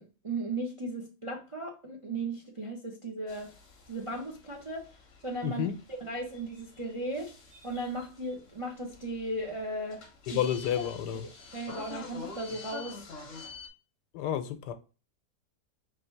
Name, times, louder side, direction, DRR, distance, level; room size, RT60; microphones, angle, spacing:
voice 1, 0.0-3.5 3.9-5.0 5.2-7.4 7.6-10.5 10.8-10.9 11.5-13.1, right 2 dB, 35° right, 0.5 m, -36 dB
sound 1, 3.3-13.7, left 4 dB, 50° left, 1.2 m, -48 dB
voice 2, 5.4-5.7 10.3-11.2 14.1-14.7, left 10 dB, 80° left, 1.3 m, -30 dB
4.2 x 2.8 x 4.4 m
omnidirectional pair, 1.8 m